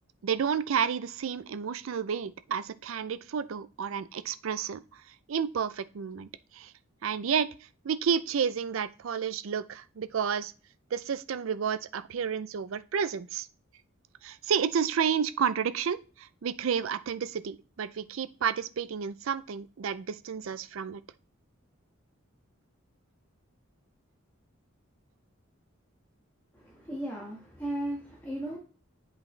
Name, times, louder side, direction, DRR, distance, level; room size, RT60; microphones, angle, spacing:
voice 1, 0.2-4.8 5.3-6.3 6.6-6.7 7.0-7.5 7.8-10.5 10.9-13.5 14.2-16.0 16.4-21.0, right 7 dB, 75° right, 14 dB, 0.4 m, -30 dB
voice 2, 26.5-28.6, right 1 dB, 10° left, -3 dB, 1.4 m, -36 dB
8.0 x 4.6 x 3.2 m, 0.35 s
head